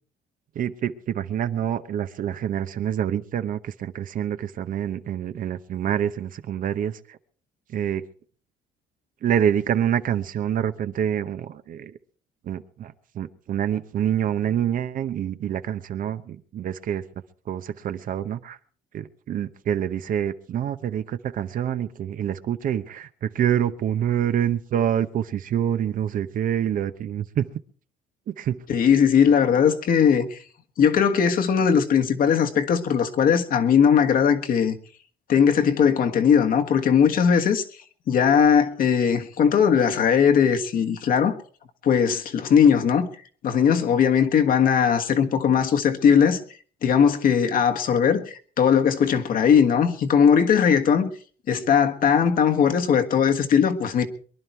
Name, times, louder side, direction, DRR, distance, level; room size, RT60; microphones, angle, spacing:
voice 1, 0.5-7.2 7.7-8.0 9.2-11.9 12.4-17.0 17.5-18.6 18.9-27.6 28.3-28.6, right 9 dB, 55° right, 0.9 m, -26 dB
voice 2, 28.7-30.4 30.8-34.8 35.3-37.6 38.1-41.4 41.8-43.1 43.4-46.4 46.8-51.1 51.5-54.1, left 7 dB, 55° left, 1.5 m, -19 dB
23.0 x 11.0 x 4.6 m
cardioid pair, 110°, 17 cm